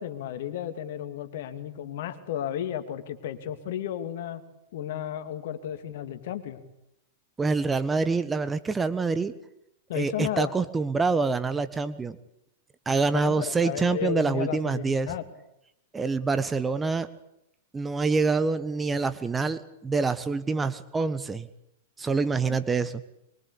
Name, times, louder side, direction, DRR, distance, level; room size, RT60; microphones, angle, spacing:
voice 1, 0.0-4.4 4.7-6.6 9.9-10.5 13.1-15.2 22.4-22.6, left 10 dB, 60° left, 9 dB, 2.7 m, -33 dB
voice 2, 7.4-9.3 9.9-12.2 12.8-15.1 15.9-17.1 17.7-21.5 22.0-23.0, right 4 dB, 15° right, 13 dB, 1.4 m, -26 dB
24.0 x 23.5 x 8.5 m, 0.82 s
hypercardioid pair, 100°, 0 cm